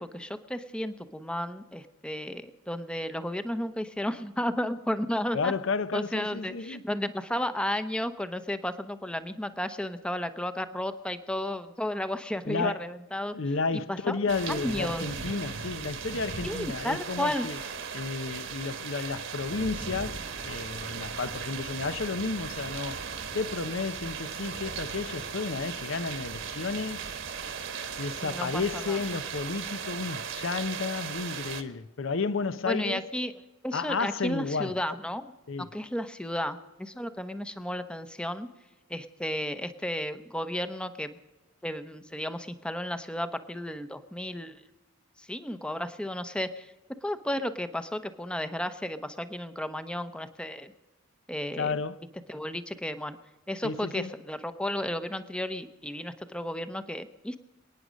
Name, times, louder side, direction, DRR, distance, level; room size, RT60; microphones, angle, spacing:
voice 1, 0.0-5.5 5.9-13.3 13.9-14.2 14.5-15.1 16.4-17.7 28.2-29.0 32.6-33.3 33.6-35.3 35.6-38.5 38.9-41.2 41.6-44.6 45.2-46.7 47.0-50.7 51.3-51.8 52.3-53.2 53.5-57.4, left 1 dB, 5° left, 0.8 m, -33 dB
voice 2, 5.3-6.8 12.5-12.9 13.3-17.6 17.9-23.1 23.3-27.0 28.0-33.1 33.7-34.7 35.5-35.8 51.6-52.1 53.6-54.1, left 4 dB, 65° left, 0.7 m, -32 dB
sound 1, 14.3-31.6, right 6 dB, 65° right, 1.5 m, -37 dB
27.5 x 9.5 x 5.1 m
head